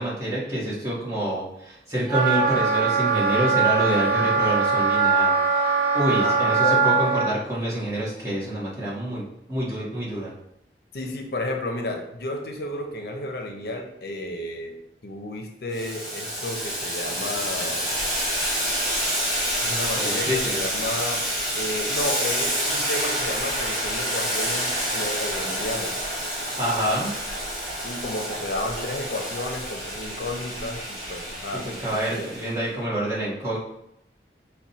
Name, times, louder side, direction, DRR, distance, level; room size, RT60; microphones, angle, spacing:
voice 1, 0.0-9.2 9.5-10.3 19.9-20.8 26.6-27.1 31.5-33.6, right 1 dB, 20° right, -7 dB, 1.3 m, -27 dB
Wind instrument woodwind instrument, 2.1-7.3, right 4 dB, 45° right, 1.5 m, -21 dB
voice 2, 6.2-6.8 10.9-14.8 15.0-17.9 19.6-21.2 21.6-26.0 27.8-32.3, left 1 dB, 60° left, 3 dB, 0.6 m, -32 dB
Boiling, 15.7-32.5, equal, ahead, 1.6 m, -28 dB
4.8 x 2.3 x 4.1 m, 0.80 s
head